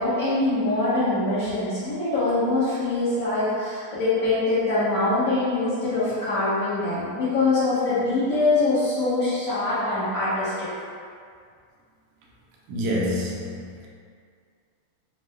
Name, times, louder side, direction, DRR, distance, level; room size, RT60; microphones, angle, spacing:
voice 1, 0.0-10.7, left 2 dB, 50° left, -14 dB, 1.2 m, -23 dB
voice 2, 12.7-13.9, equal, 70° right, -3 dB, 1.0 m, -27 dB
4.5 x 2.1 x 3.4 m, 2.2 s
omnidirectional pair, 2.4 m